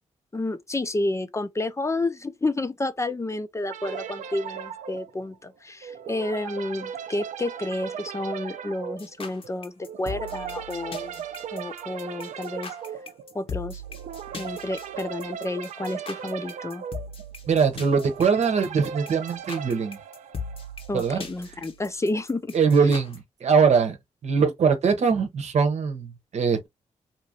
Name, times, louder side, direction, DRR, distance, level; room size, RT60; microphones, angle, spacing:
voice 1, 0.3-11.1 11.5-12.7 13.3-13.8 14.3-16.8 20.9-22.5, left 2 dB, 25° left, 0.5 m, -30 dB
sound 1, 3.7-20.9, right 8 dB, 80° right, 0.4 m, -38 dB
sound 2, 9.0-23.2, left 3 dB, 50° left, 0.9 m, -40 dB
voice 2, 17.5-20.0 20.9-21.2 22.5-24.0 24.2-26.7, right 5 dB, 65° right, 0.9 m, -22 dB
2.9 x 2.5 x 2.8 m
cardioid pair, 65°, 12 cm